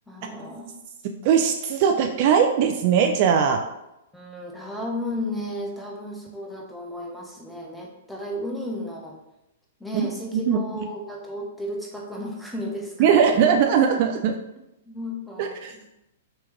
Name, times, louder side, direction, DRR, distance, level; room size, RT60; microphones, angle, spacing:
voice 1, 0.1-0.7 4.1-9.2 9.8-13.4 14.9-15.8, left 1 dB, 5° left, -1 dB, 0.7 m, -34 dB
voice 2, 1.2-3.6 9.9-10.1 10.5-10.6 13.0-14.4 15.4-15.7, right 7 dB, 45° right, 4 dB, 0.3 m, -20 dB
3.2 x 3.0 x 3.1 m, 0.88 s
figure-of-eight pair, 110°, 0 cm